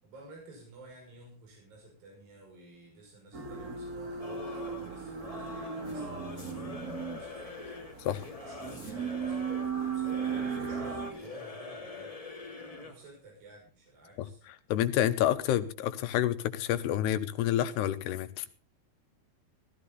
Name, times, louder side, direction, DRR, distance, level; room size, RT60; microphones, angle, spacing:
voice 1, 0.0-7.6 8.1-12.1 12.6-14.4, right 2 dB, 60° right, 7.6 m, -52 dB
sound 1, 3.3-11.1, right 6 dB, 40° right, 1.3 m, -36 dB
Singing / Musical instrument, 4.2-13.1, left 3 dB, 15° left, 1.3 m, -44 dB
voice 2, 14.7-18.5, left 12 dB, 85° left, 3.0 m, -28 dB
16.5 x 14.0 x 4.1 m
omnidirectional pair, 4.7 m